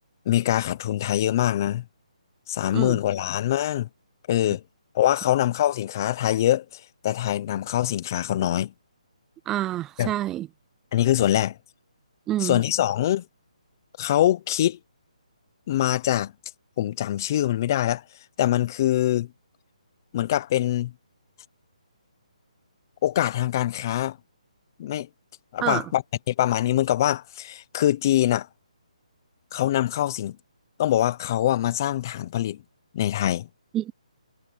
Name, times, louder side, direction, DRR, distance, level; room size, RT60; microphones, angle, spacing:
voice 1, 0.3-1.8 2.5-3.9 4.3-4.6 4.9-8.7 10.0-10.1 10.9-11.6 12.4-13.2 14.0-14.8 15.7-16.3 16.8-18.0 18.4-19.3 20.1-20.9 23.0-24.2 24.8-25.1 25.5-26.0 26.3-28.5 29.5-30.4 30.8-32.6 32.9-33.5, left 12 dB, 30° left, 0.8 m, -24 dB
voice 2, 9.5-10.5 12.3-12.6 25.6-25.9 33.7-33.9, right 13 dB, 10° right, 0.3 m, -27 dB
hypercardioid pair, 165°, 4 cm